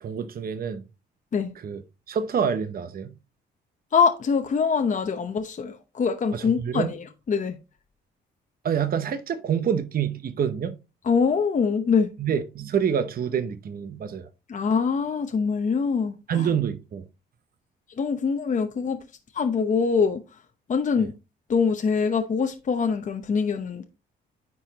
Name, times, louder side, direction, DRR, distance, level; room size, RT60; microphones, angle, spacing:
voice 1, 0.0-0.8 1.6-1.8 2.1-3.1 6.3-6.9 8.6-10.7 12.2-14.3 16.3-17.0 21.0-21.1, right 7 dB, 50° right, 0.8 m, -27 dB
voice 2, 3.9-7.6 11.0-12.1 14.5-16.4 18.0-19.0 19.3-20.2 20.7-21.1 21.5-23.8, left 5 dB, 40° left, 0.8 m, -24 dB
9.5 x 4.6 x 2.9 m
cardioid pair, 90°, 20 cm